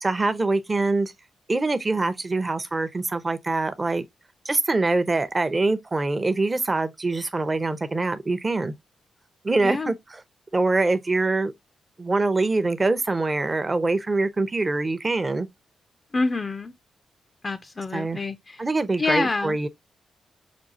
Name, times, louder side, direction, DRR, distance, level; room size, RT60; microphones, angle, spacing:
voice 1, 0.0-1.1 1.5-4.0 4.5-8.7 9.4-10.2 10.5-11.5 12.0-15.5 17.9-18.2 18.6-19.7, right 3 dB, 30° right, 0.6 m, -24 dB
voice 2, 16.1-16.7 17.4-18.6 19.0-19.6, left 3 dB, 35° left, 0.4 m, -27 dB
6.1 x 2.4 x 2.6 m
cardioid pair, 60°, 0 cm